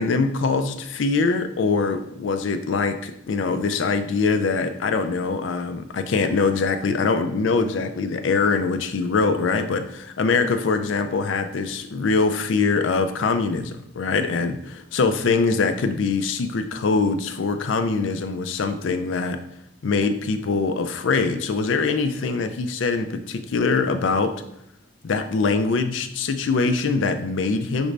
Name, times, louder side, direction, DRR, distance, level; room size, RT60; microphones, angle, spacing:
voice 1, 0.0-19.4 19.8-24.3 25.0-27.9, left 4 dB, 75° left, 8 dB, 0.4 m, -23 dB
6.0 x 2.6 x 3.2 m, 0.77 s
head